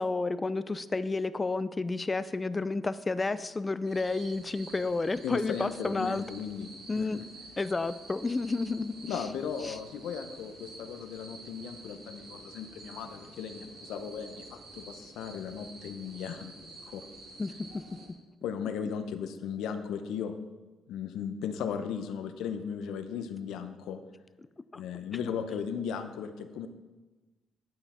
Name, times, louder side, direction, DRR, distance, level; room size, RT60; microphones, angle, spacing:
voice 1, 0.0-6.2 6.9-7.2 7.6-9.2 9.6-9.8 17.4-17.8 24.7-24.8, left 3 dB, 25° left, 14 dB, 0.4 m, -31 dB
sound 1, 3.8-18.1, right 2 dB, 75° right, 3.2 m, -49 dB
voice 2, 5.2-6.7 7.0-7.2 9.1-17.1 18.4-20.3 20.9-24.0 24.7-26.7, left 7 dB, 85° left, 9 dB, 0.7 m, -36 dB
10.5 x 5.7 x 4.3 m, 1.2 s
cardioid pair, 90°, 0 cm